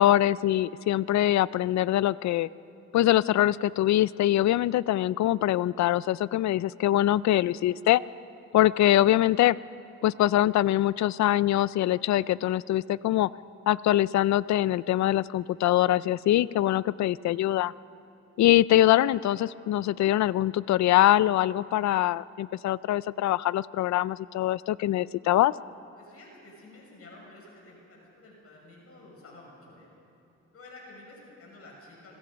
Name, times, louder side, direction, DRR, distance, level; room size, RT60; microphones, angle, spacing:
voice 1, 0.0-2.5 2.9-8.0 8.5-9.6 10.0-13.3 13.7-17.7 18.4-25.5, left 13 dB, 65° left, 19 dB, 0.5 m, -23 dB
voice 2, 25.9-29.9 30.5-32.2, left 2 dB, 50° left, -2 dB, 6.6 m, -50 dB
26.0 x 21.0 x 5.2 m, 2.6 s
cardioid pair, 90°, 30 cm